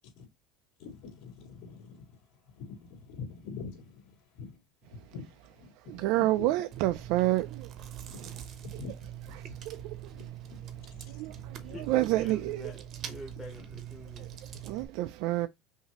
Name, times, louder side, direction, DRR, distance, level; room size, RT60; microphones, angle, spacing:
voice 1, 0.8-6.5 8.1-9.8 10.1-11.8 13.5-13.6, left 5 dB, 65° left, 2.7 m, -47 dB
voice 2, 5.8-8.4 8.7-8.8 9.3-10.3 11.1-12.7 14.2-15.5, right 17 dB, 60° right, 0.4 m, -30 dB
Chewing mastication, 6.7-14.9, right 10 dB, 35° right, 0.8 m, -43 dB
voice 3, 11.6-12.8 13.1-14.3, left 1 dB, 10° left, 1.1 m, -46 dB
5.8 x 2.7 x 2.9 m
cardioid pair, 170°, 0 cm